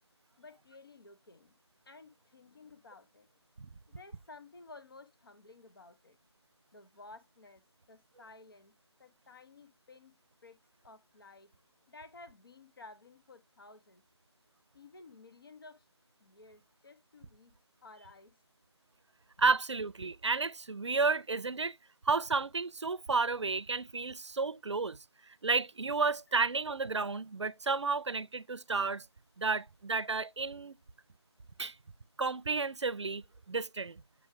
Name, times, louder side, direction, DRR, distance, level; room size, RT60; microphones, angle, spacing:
voice 1, 0.4-1.5 1.9-3.3 3.9-6.2 6.7-7.6 7.9-8.7 9.0-10.1 10.4-10.6 10.8-11.5 11.9-14.0 14.7-15.8 16.2-17.5 17.8-18.3, left 3 dB, 55° left, 1.0 m, -54 dB
voice 2, 19.4-21.8 22.0-25.0 25.3-29.1 29.4-30.8 31.6-31.8 32.2-34.0, right 4 dB, 85° right, 0.5 m, -32 dB
7.9 x 3.2 x 4.6 m
figure-of-eight pair, 165°, 14 cm